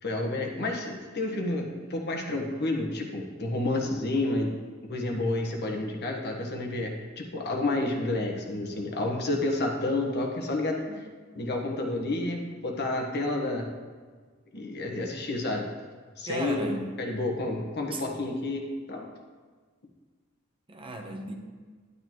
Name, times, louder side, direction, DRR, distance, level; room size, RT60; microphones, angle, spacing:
voice 1, 0.0-4.5 4.9-10.8 11.3-13.7 14.5-15.6 16.2-16.7 17.0-19.1, left 2 dB, 50° left, 2 dB, 1.3 m, -30 dB
voice 2, 16.3-16.9 17.9-18.0 20.7-21.3, right 2 dB, 25° right, 3 dB, 0.9 m, -36 dB
11.5 x 9.5 x 3.1 m, 1.5 s
head